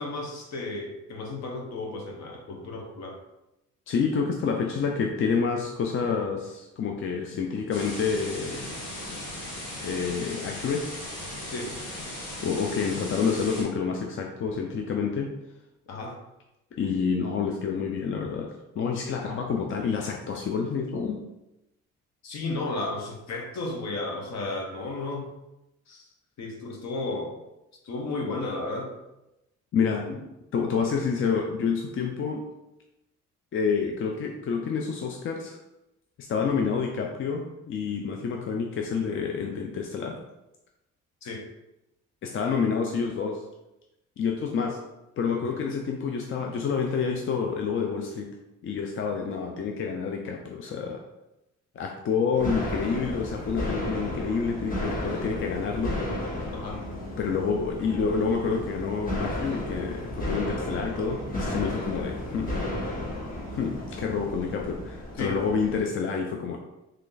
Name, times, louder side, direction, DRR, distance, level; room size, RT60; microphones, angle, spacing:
voice 1, 0.0-3.2 9.1-9.2 11.5-11.7 15.9-16.2 22.2-25.3 25.9-26.0 26.4-27.3 27.8-28.9 30.1-30.2 41.2-41.4 56.5-56.8 65.2-65.4, left 2 dB, 65° left, 2 dB, 0.9 m, -33 dB
voice 2, 3.9-8.7 9.8-11.0 12.4-15.3 16.7-21.2 29.7-30.1 30.5-32.4 33.5-35.6 36.2-40.2 42.2-43.4 44.2-44.8 45.2-48.3 48.6-51.0 51.8-55.9 57.2-62.5 63.5-66.6, left 5 dB, 45° left, 2 dB, 0.4 m, -28 dB
sound 1, 7.7-13.6, left 1 dB, 80° left, 1.4 m, -37 dB
sound 2, 52.4-65.8, left 1 dB, 30° left, 1.0 m, -33 dB
3.3 x 2.5 x 3.8 m, 0.92 s
cardioid pair, 90°, 30 cm